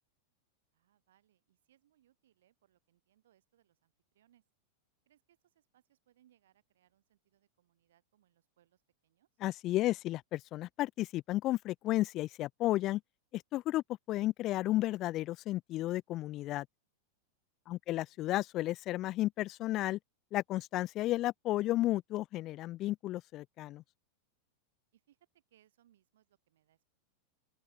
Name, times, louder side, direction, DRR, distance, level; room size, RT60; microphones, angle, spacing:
voice 1, 0.7-4.4 5.1-9.3 17.7-18.2 24.9-26.9, right 12 dB, 60° right, 6.3 m, -72 dB
voice 2, 9.4-13.0 13.3-16.7 17.7-20.0 20.3-23.8, left 16 dB, 35° left, 0.4 m, -33 dB
open air
figure-of-eight pair, 90°, 0 cm